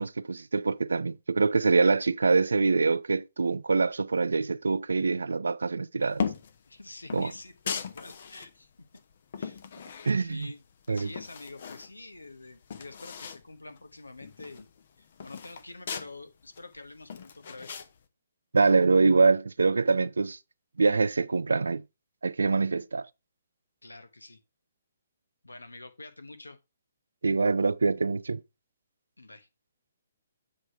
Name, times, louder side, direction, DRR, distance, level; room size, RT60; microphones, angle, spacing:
voice 1, 0.0-6.2 7.1-7.3 10.0-10.5 10.9-11.1 18.5-20.4 20.8-21.8 22.2-23.1 27.2-28.4, right 4 dB, 70° right, 0.3 m, -24 dB
sound 1, 6.1-6.6 7.1-8.5 9.0-10.5 10.8-11.9 12.2-12.3 12.5-13.4 13.8-13.9 14.2-16.1 16.6-17.9, left 6 dB, 50° left, 0.8 m, -37 dB
voice 2, 6.7-8.9 9.4-9.6 10.2-14.7 15.0-17.9 23.8-24.4 25.4-26.6 29.2-29.5, left 2 dB, 80° left, 1.0 m, -47 dB
7.7 x 3.3 x 5.4 m
figure-of-eight pair, 130°, 0 cm